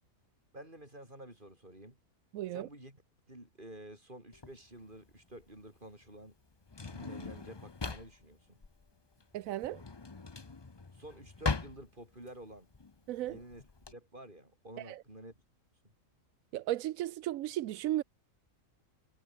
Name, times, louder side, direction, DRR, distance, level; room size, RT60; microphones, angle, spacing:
voice 1, 0.5-2.0 2.5-3.0 3.3-6.3 6.8-8.6 10.9-12.7 13.2-13.6 13.9-15.4, right 1 dB, 35° right, 7.7 m, -50 dB
voice 2, 2.3-2.7 9.3-9.8 13.1-13.4 14.8-15.0 16.5-18.0, right 14 dB, 90° right, 1.0 m, -35 dB
Drawer open or close, 4.3-13.9, left 4 dB, 25° left, 0.7 m, -41 dB
omnidirectional pair, 1.4 m